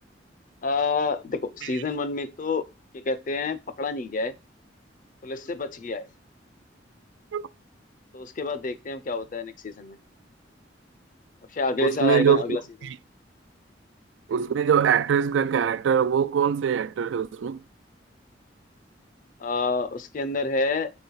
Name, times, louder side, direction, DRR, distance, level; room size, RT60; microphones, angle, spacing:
voice 1, 0.6-2.7 2.9-4.3 5.2-6.1 8.1-10.0 11.5-12.6 19.4-20.9, left 3 dB, 45° left, 0.5 m, -28 dB
voice 2, 11.8-12.4 14.3-17.6, right 7 dB, 85° right, 0.3 m, -22 dB
4.4 x 3.9 x 5.6 m
head